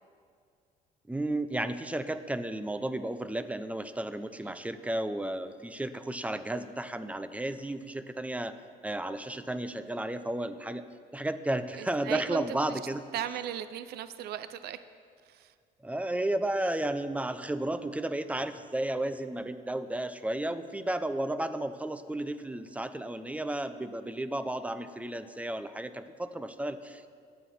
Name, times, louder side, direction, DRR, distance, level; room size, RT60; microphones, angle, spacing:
voice 1, 1.1-8.6 8.8-10.8 11.1-13.1 15.8-27.1, right 1 dB, 10° right, 10 dB, 0.8 m, -33 dB
voice 2, 11.7-12.4 12.7-12.8 13.1-14.8 15.2-15.5, right 11 dB, 70° right, 12 dB, 0.7 m, -37 dB
24.0 x 9.2 x 4.3 m, 2.2 s
cardioid pair, 110°, 17 cm